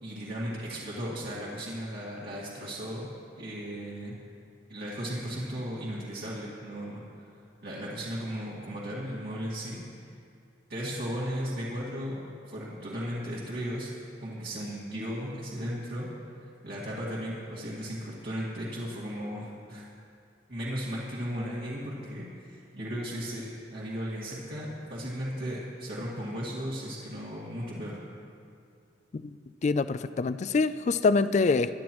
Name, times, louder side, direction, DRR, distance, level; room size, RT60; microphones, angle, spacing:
voice 1, 0.0-3.1 3.4-4.2 4.7-7.3 7.6-9.8 10.7-12.2 12.5-13.9 14.2-16.1 16.6-19.9 20.5-28.0, equal, 60° right, -8 dB, 2.0 m, -36 dB
voice 2, 29.6-31.7, left 4 dB, 40° left, 13 dB, 0.3 m, -25 dB
22.5 x 10.5 x 3.1 m, 2.4 s
head